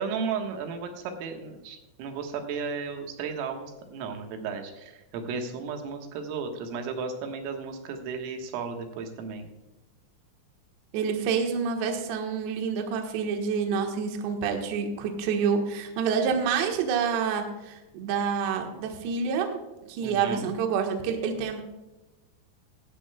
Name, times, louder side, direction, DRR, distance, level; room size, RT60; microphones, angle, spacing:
voice 1, 0.0-9.5 20.0-20.5, right 5 dB, 85° right, 4 dB, 4.0 m, -34 dB
voice 2, 10.9-19.6 19.9-21.6, right 6 dB, 70° right, 3 dB, 3.1 m, -28 dB
17.0 x 12.5 x 2.2 m, 1.1 s
omnidirectional pair, 5.8 m